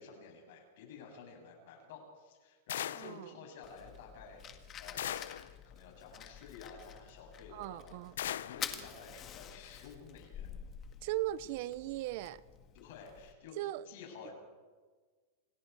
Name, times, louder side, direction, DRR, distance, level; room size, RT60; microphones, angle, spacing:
voice 1, 0.0-5.4 5.6-8.0 8.3-10.5 12.7-13.6 13.8-14.3, left 5 dB, 65° left, 7.7 m, -52 dB
sound 1, 2.7-3.2 5.0-5.5 8.2-8.7, left 11 dB, 85° left, 0.6 m, -38 dB
voice 2, 2.9-3.3 7.5-8.2 11.0-12.4 13.6-13.9, right 14 dB, 55° right, 0.7 m, -38 dB
Fire, 3.6-13.3, left 9 dB, 25° left, 1.8 m, -48 dB
28.0 x 19.5 x 4.8 m
supercardioid pair, 150°, 0 cm